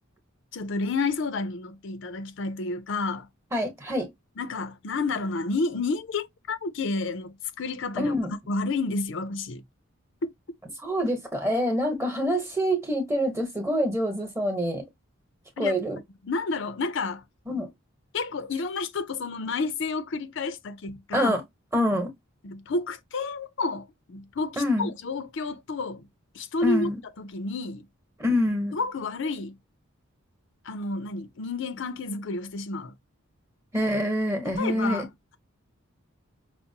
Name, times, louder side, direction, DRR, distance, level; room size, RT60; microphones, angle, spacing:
voice 1, 0.5-3.3 4.4-8.1 8.5-9.6 10.2-10.3 15.6-15.8 16.3-17.2 18.1-21.3 22.4-26.1 26.3-26.9 27.2-27.9 28.7-29.6 30.6-32.9 34.4-35.1, left 3 dB, 55° left, 0.5 m, -30 dB
voice 2, 3.5-4.1 8.0-8.3 10.8-14.9 15.6-16.0 17.5-17.7 21.1-21.4 21.7-22.1 24.6-24.9 26.6-27.0 28.2-28.7 33.7-35.1, equal, 10° right, 1.0 m, -26 dB
5.7 x 2.1 x 2.7 m
head